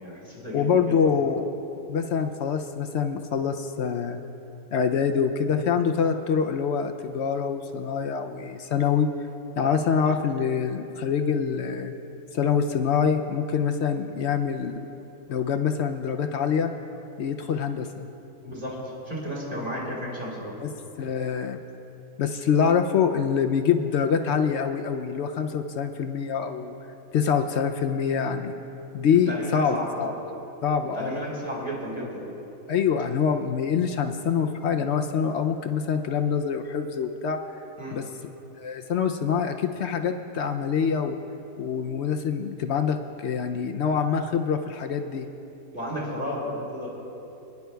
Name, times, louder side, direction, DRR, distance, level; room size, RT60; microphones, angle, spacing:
voice 1, 0.0-1.0 9.6-9.7 18.4-20.5 29.3-30.0 30.9-32.3 37.8-38.0 45.7-46.9, equal, 30° right, -6 dB, 3.4 m, -33 dB
voice 2, 0.5-1.5 1.9-4.2 4.7-9.1 9.6-11.9 12.3-14.9 15.3-16.7 17.2-18.1 20.6-20.7 21.0-21.6 22.2-26.7 27.1-28.5 28.9-30.1 30.6-31.2 32.7-37.4 37.9-38.1 38.6-41.2 41.6-45.3, left 7 dB, 70° left, 6 dB, 0.6 m, -25 dB
26.5 x 10.5 x 2.3 m, 2.9 s
omnidirectional pair, 1.6 m